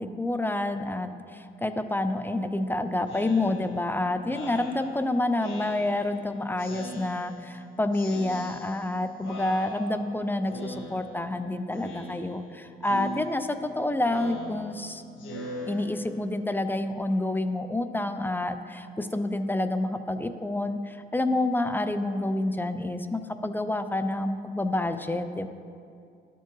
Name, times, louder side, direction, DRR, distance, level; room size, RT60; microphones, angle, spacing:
voice 1, 0.0-15.0 15.7-25.5, left 2 dB, 10° left, 9 dB, 0.4 m, -28 dB
Speech synthesizer, 3.1-6.2 6.6-7.6 7.9-8.9 9.2-10.1 10.5-11.4 11.7-12.5 12.8-16.4, left 1 dB, 75° left, 1.5 m, -41 dB
12.5 x 4.5 x 3.1 m, 2.4 s
cardioid pair, 90°, 20 cm